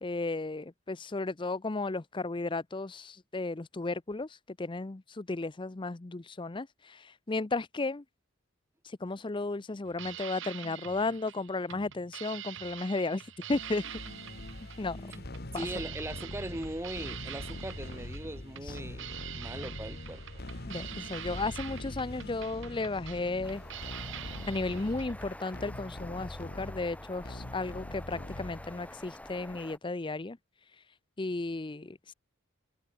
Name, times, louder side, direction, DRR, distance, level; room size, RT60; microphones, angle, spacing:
voice 1, 0.0-8.0 8.8-13.2 13.5-13.8 14.8-15.2 15.5-15.7 18.6-18.8 20.7-23.6 24.5-30.4 30.8-30.9 31.2-32.1, left 3 dB, 25° left, 0.6 m, -34 dB
sound 1, 9.9-25.1, right 10 dB, 60° right, 1.5 m, -45 dB
sound 2, 13.5-28.9, left 1 dB, 50° left, 2.0 m, -43 dB
voice 2, 15.5-20.4, right 1 dB, 10° right, 1.3 m, -40 dB
sound 3, 23.4-29.8, left 1 dB, 5° left, 3.3 m, -48 dB
head